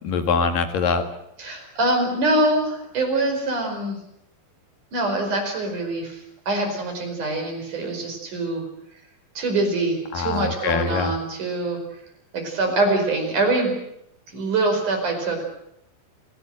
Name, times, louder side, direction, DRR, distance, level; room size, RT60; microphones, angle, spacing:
voice 1, 0.0-1.0 10.1-11.1, left 5 dB, 55° left, 6 dB, 3.2 m, -23 dB
voice 2, 1.4-4.0 4.9-8.7 9.3-11.8 12.3-13.7 14.3-15.5, right 2 dB, 40° right, 3 dB, 6.2 m, -24 dB
30.0 x 17.0 x 7.9 m, 0.76 s
omnidirectional pair, 5.8 m